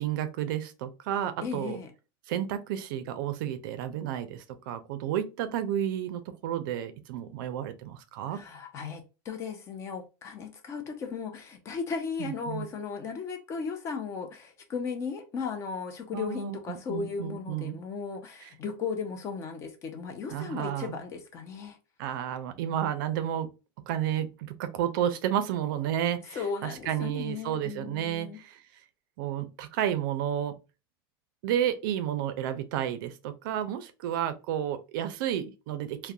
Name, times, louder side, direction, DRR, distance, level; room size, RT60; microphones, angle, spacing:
voice 1, 0.0-1.8 2.3-8.4 12.2-12.7 16.1-17.8 18.4-18.5 20.3-21.0 22.0-23.5 23.9-28.6 29.2-30.6 31.4-36.1, right 10 dB, 60° right, 0.4 m, -31 dB
voice 2, 1.4-1.9 8.3-21.8 26.3-28.4, left 5 dB, 25° left, 0.4 m, -36 dB
2.3 x 2.0 x 2.6 m
supercardioid pair, 160°, 12 cm